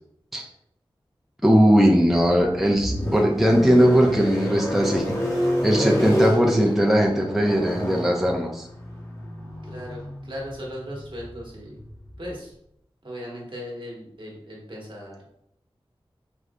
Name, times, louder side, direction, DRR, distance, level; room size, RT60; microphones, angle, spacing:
voice 1, 1.4-5.0 5.3-8.7, equal, ahead, -1 dB, 0.5 m, -19 dB
sound 1, 2.0-12.3, equal, 30° left, 1.0 m, -29 dB
voice 2, 9.7-10.0 10.3-11.8 12.2-12.5 13.0-15.2, equal, 55° right, -3 dB, 1.1 m, -37 dB
4.7 x 2.5 x 2.2 m, 0.74 s
wide cardioid pair, 45°, 10 cm